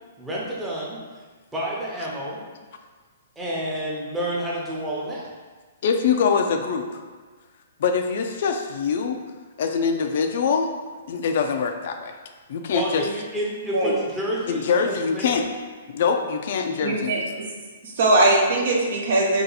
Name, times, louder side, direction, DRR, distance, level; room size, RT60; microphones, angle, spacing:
voice 1, 0.2-1.0 1.5-2.4 3.4-5.3 12.7-15.4, equal, 10° right, -5 dB, 0.8 m, -29 dB
voice 2, 5.8-7.0 7.8-9.2 9.6-10.7 11.1-12.1 12.5-13.0 14.5-15.5 15.9-17.1, left 6 dB, 60° left, 5 dB, 0.4 m, -23 dB
voice 3, 16.8-17.2 17.8-19.4, right 2 dB, 60° right, -1 dB, 0.8 m, -20 dB
2.7 x 2.5 x 4.0 m, 1.4 s
hypercardioid pair, 135°, 0 cm